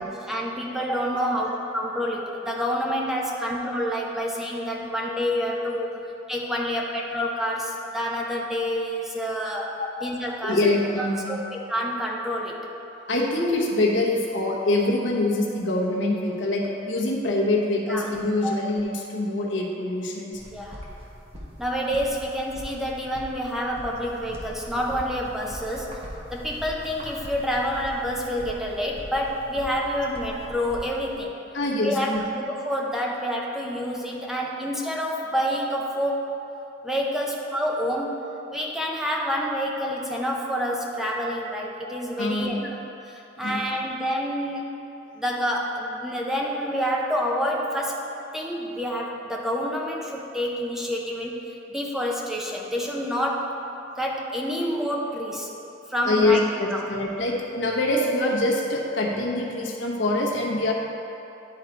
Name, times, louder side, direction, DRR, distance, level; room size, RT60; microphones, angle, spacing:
voice 1, 0.2-6.0 6.3-10.6 11.0-11.4 11.7-12.7 17.9-18.1 18.4-18.5 20.5-20.8 21.6-26.0 26.3-31.3 31.8-36.3 36.8-38.2 38.5-42.6 43.1-44.7 45.2-48.0 48.3-51.4 51.7-53.6 54.0-55.5 55.9-56.4 56.7-56.9, equal, ahead, -2 dB, 0.5 m, -28 dB
voice 2, 10.4-11.4 13.1-20.4 30.9-31.0 31.5-32.2 42.2-42.6 43.4-43.6 56.1-60.7, left 2 dB, 70° left, -1 dB, 1.0 m, -24 dB
sound 1, 20.3-31.2, equal, 30° right, 1.1 m, -41 dB
10.5 x 3.9 x 4.5 m, 2.9 s
head